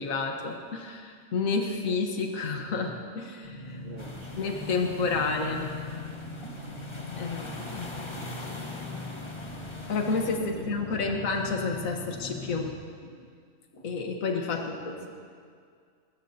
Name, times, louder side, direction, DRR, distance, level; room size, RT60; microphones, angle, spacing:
voice 1, 0.0-3.8 4.3-5.7 6.7-6.8 7.2-7.9 9.9-12.7 13.7-15.1, left 4 dB, 70° left, 2 dB, 1.7 m, -30 dB
sound 1, 3.4-12.7, left 2 dB, 50° left, 2.0 m, -40 dB
voice 2, 3.8-4.4 8.2-8.3 10.4-11.1 14.6-15.1, right 2 dB, 35° right, -4 dB, 1.6 m, -47 dB
sound 2, 4.0-10.4, left 2 dB, 20° left, 1.2 m, -43 dB
23.0 x 20.5 x 2.8 m, 2.1 s
omnidirectional pair, 1.5 m